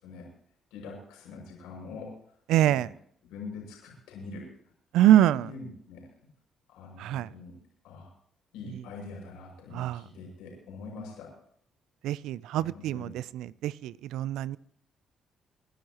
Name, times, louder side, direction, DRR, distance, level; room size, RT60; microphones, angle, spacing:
voice 1, 0.7-2.2 2.6-2.9 3.3-4.5 5.4-6.3 6.7-7.5 7.8-8.1 8.5-11.3 12.5-13.1, left 3 dB, 85° left, -2 dB, 6.2 m, -44 dB
voice 2, 2.5-2.9 4.9-5.5 7.0-7.3 9.7-10.0 12.0-14.6, right 12 dB, 80° right, 20 dB, 0.5 m, -24 dB
28.0 x 11.0 x 3.0 m, 0.63 s
supercardioid pair, 60°, 0 cm